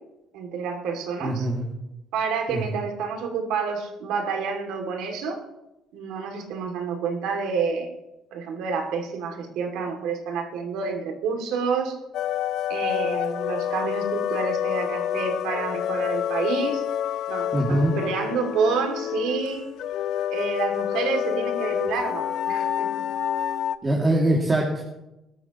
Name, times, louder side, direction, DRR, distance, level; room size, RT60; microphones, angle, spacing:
voice 1, 0.3-1.5 2.1-5.4 5.9-7.9 8.3-12.0 12.7-16.8 17.3-19.6 20.3-22.9, right 5 dB, 85° right, 3 dB, 2.6 m, -28 dB
voice 2, 1.2-1.7 2.5-2.6 17.5-18.0 23.8-24.8, right 1 dB, 25° right, -2 dB, 2.5 m, -22 dB
sound 1, 12.1-23.8, left 10 dB, 75° left, 0.5 m, -28 dB
19.5 x 13.0 x 3.1 m, 0.94 s
cardioid pair, 110°, 0 cm